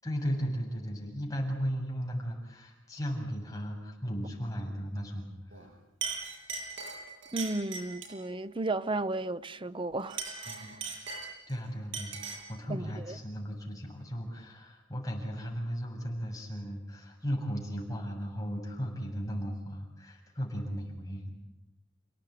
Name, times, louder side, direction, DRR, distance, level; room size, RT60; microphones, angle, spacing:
voice 1, 0.0-5.7 10.5-10.7 11.5-21.3, equal, 15° left, 7.3 m, -36 dB
Chink clink, 5.5-5.7 6.0-8.2 10.0-11.5 11.9-12.5, right 5 dB, 70° right, 7.5 m, -39 dB
voice 2, 7.3-10.9 12.7-13.2, right 2 dB, 25° right, 0.8 m, -34 dB
30.0 x 18.0 x 9.5 m
head